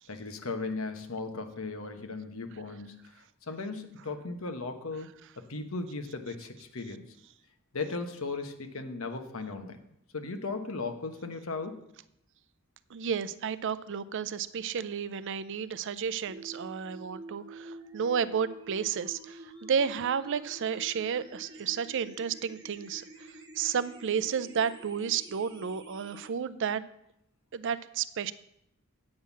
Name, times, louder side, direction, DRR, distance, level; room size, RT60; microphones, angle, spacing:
voice 1, 0.1-3.0 3.5-5.1 5.5-7.0 7.7-9.8 10.1-11.8, left 3 dB, 70° left, 7 dB, 1.1 m, -36 dB
voice 2, 12.9-23.0 23.6-26.8 27.5-28.3, right 7 dB, 60° right, 16 dB, 0.4 m, -32 dB
sound 1, 16.3-26.3, right 2 dB, 20° right, 1.1 m, -48 dB
8.7 x 5.7 x 7.2 m, 0.77 s
head